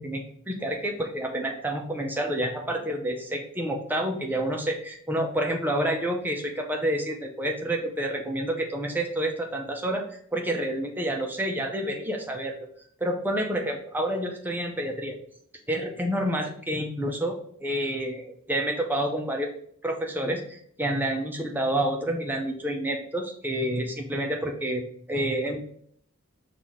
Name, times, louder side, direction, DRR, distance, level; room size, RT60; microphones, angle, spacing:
voice 1, 0.0-10.0 10.3-12.7 13.0-15.2 15.7-19.5 19.8-25.6, right 1 dB, 10° right, 2 dB, 0.6 m, -29 dB
5.9 x 2.5 x 3.5 m, 0.63 s
head